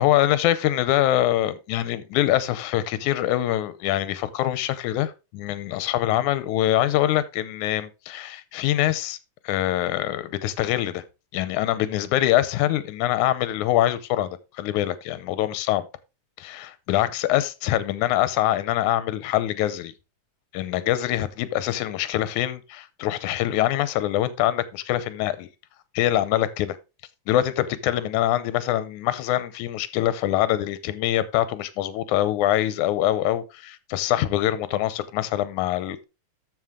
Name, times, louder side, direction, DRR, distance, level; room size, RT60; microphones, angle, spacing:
voice 1, 0.0-9.2 9.4-11.0 11.3-15.9 16.4-19.9 20.5-25.5 26.0-26.8 27.3-36.0, left 13 dB, 85° left, 2.2 m, -24 dB
13.5 x 5.5 x 3.6 m
omnidirectional pair, 3.4 m